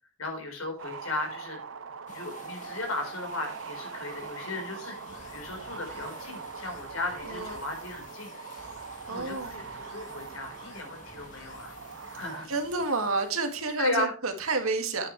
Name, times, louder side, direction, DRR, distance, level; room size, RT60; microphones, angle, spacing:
voice 1, 0.2-1.6 2.1-5.0 5.3-8.3 9.1-11.8 12.1-12.5 13.8-14.1, left 2 dB, 85° left, 3 dB, 4.4 m, -35 dB
sound 1, 0.8-12.5, right 5 dB, 65° right, 0.7 m, -42 dB
sound 2, 2.1-13.8, left 2 dB, 35° left, 2.2 m, -52 dB
sound 3, 5.1-13.1, left 1 dB, 60° left, 4.1 m, -52 dB
voice 2, 7.2-7.6 9.1-9.6 12.1-15.1, right 3 dB, 90° right, 5 dB, 2.2 m, -30 dB
9.4 x 9.4 x 3.3 m, 0.36 s
head